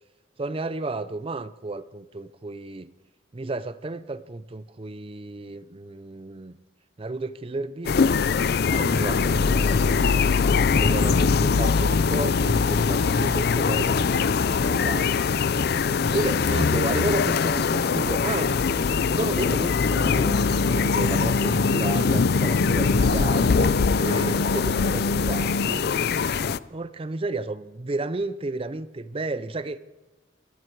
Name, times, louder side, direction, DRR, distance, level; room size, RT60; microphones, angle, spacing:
voice 1, 0.4-2.9 3.3-6.6 7.0-8.0 8.7-10.3 10.7-15.3 16.1-18.8 19.1-23.7 24.0-25.9 26.7-29.8, right 2 dB, 30° right, 0.5 m, -32 dB
sound 1, 7.9-26.6, left 5 dB, 55° left, 0.4 m, -22 dB
sound 2, 20.2-25.7, left 1 dB, 75° left, 1.6 m, -29 dB
21.5 x 14.0 x 4.7 m
head